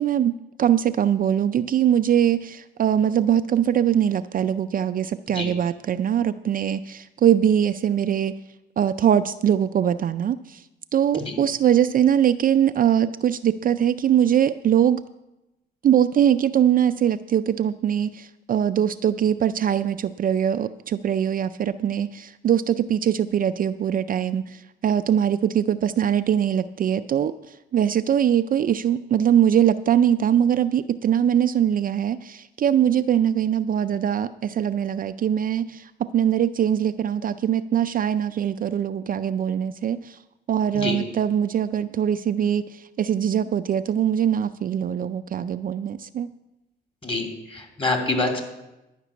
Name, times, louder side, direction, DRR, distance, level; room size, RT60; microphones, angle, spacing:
voice 1, 0.0-8.3 8.8-10.6 10.9-15.0 15.8-40.2 40.5-46.3, right 9 dB, 45° right, 11 dB, 0.4 m, -22 dB
voice 2, 47.0-48.4, left 2 dB, 25° left, 2 dB, 2.7 m, -26 dB
11.0 x 6.0 x 8.3 m, 0.96 s
cardioid pair, 90°, 20 cm